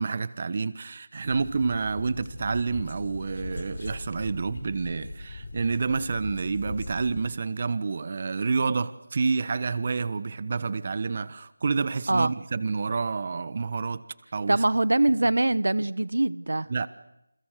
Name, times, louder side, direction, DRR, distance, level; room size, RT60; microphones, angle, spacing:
voice 1, 0.0-14.0 14.3-14.6 16.7-16.9, right 4 dB, 35° right, 1.2 m, -28 dB
sound 1, 1.2-7.3, left 2 dB, 55° left, 4.6 m, -40 dB
voice 2, 14.5-16.7, right 2 dB, 75° right, 1.0 m, -23 dB
29.5 x 29.5 x 6.7 m
figure-of-eight pair, 170°, 0 cm